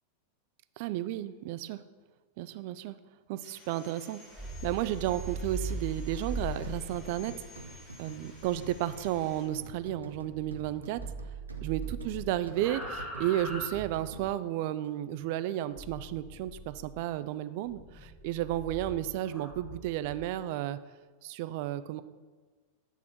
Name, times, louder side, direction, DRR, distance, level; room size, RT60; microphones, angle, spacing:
voice 1, 0.8-1.8 2.4-3.0 3.3-4.2 4.6-7.6 8.0-11.0 11.6-20.8 21.2-22.0, right 13 dB, 50° right, 14 dB, 0.3 m, -33 dB
Sawing, 3.4-9.4, left 3 dB, 30° left, 2.3 m, -54 dB
sound 1, 4.2-10.7 10.9-14.4 15.8-17.0 17.7-20.3, right 2 dB, 5° right, 1.5 m, -41 dB
sound 2, 5.7-14.6, right 2 dB, 75° right, 0.7 m, -48 dB
9.1 x 3.5 x 5.9 m, 1.4 s
figure-of-eight pair, 90°, 0 cm